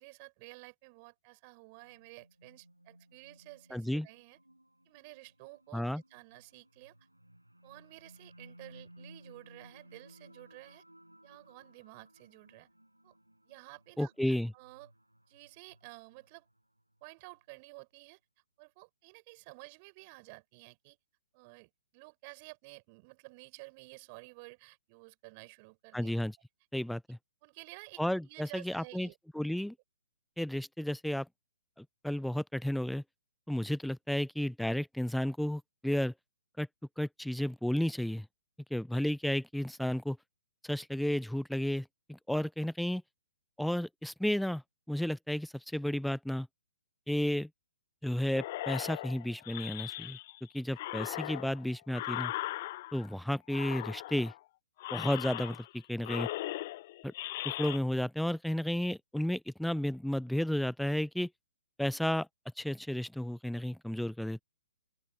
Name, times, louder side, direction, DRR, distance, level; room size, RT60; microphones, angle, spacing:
voice 1, 0.0-4.4 4.8-5.8 6.1-7.0 7.6-10.8 11.2-12.7 13.0-13.1 13.4-14.9 15.3-16.5 17.0-18.2 18.6-21.0 21.3-26.1 27.4-29.2, right 30 dB, 30° right, 6.3 m, -52 dB
sound 1, 1.7-17.1, right 1 dB, 85° right, 5.4 m, -60 dB
voice 2, 3.7-4.1 5.7-6.0 14.0-14.5 25.9-26.3 26.7-27.2 28.0-29.1 29.3-29.7 30.4-31.3 31.8-33.0 33.5-36.1 36.6-36.7 37.0-38.3 38.7-40.2 40.6-43.0 43.6-44.6 44.9-46.5 47.1-47.5 48.0-50.2 50.5-52.3 52.9-54.3 54.9-56.3 57.4-61.3 61.8-62.3 62.6-64.4, left 1 dB, ahead, 0.6 m, -32 dB
sound 2, 48.3-50.4 50.7-53.1 53.5-54.4 54.8-55.8 56.0-57.8, left 17 dB, 40° left, 0.3 m, -39 dB
open air
figure-of-eight pair, 120°, 0 cm